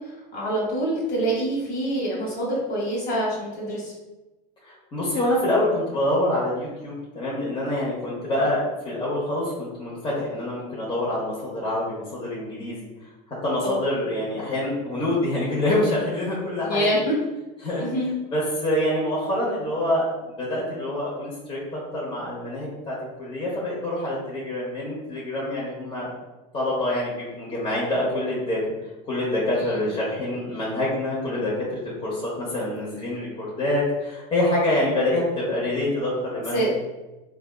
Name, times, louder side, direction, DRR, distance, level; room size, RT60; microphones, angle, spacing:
voice 1, 0.3-3.9 13.6-13.8 16.6-17.1 17.8-18.1 29.6-29.8 36.5-36.7, right 1 dB, 50° left, -4 dB, 1.5 m, -26 dB
voice 2, 4.6-12.8 13.4-16.9 17.6-17.9 18.3-20.1 20.4-26.1 26.5-28.6 29.1-36.8, left 1 dB, 25° left, -7 dB, 1.0 m, -26 dB
3.2 x 2.3 x 2.3 m, 1.1 s
supercardioid pair, 110°, 21 cm